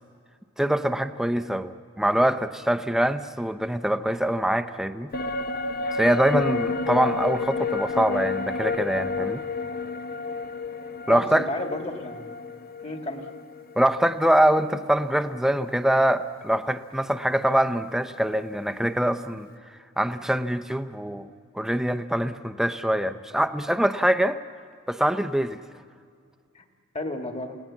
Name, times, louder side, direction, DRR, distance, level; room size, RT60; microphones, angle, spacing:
voice 1, 0.6-5.1 5.9-9.4 11.1-11.5 13.8-21.3 21.5-24.4 24.9-25.6, right 1 dB, ahead, 9 dB, 0.6 m, -24 dB
sound 1, 5.1-14.6 15.0-15.1, left 3 dB, 45° left, 0.7 m, -30 dB
voice 2, 11.1-12.4 12.8-13.2 26.6-26.7 26.9-27.6, left 1 dB, 30° left, 4 dB, 1.7 m, -32 dB
29.5 x 18.0 x 7.2 m, 2.2 s
head